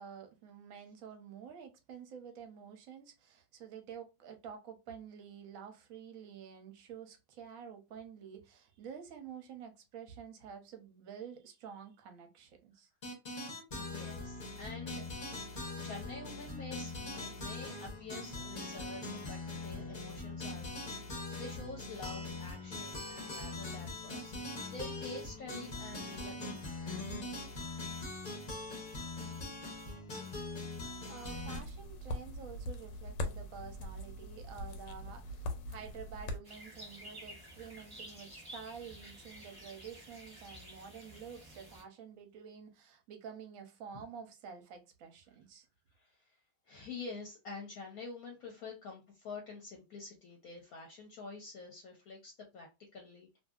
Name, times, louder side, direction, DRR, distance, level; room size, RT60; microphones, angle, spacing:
voice 1, 0.0-12.9 31.1-45.7, right 7 dB, 60° right, 0.9 m, -49 dB
sound 1, 13.0-31.6, left 2 dB, 40° left, 0.7 m, -42 dB
voice 2, 13.7-15.0 15.5-26.6 45.9-46.4 46.7-53.3, left 3 dB, 65° left, 1.0 m, -48 dB
sound 2, 31.2-36.4, left 1 dB, 85° left, 1.3 m, -41 dB
sound 3, 36.4-41.8, equal, 20° right, 0.8 m, -51 dB
2.7 x 2.6 x 2.3 m
omnidirectional pair, 1.9 m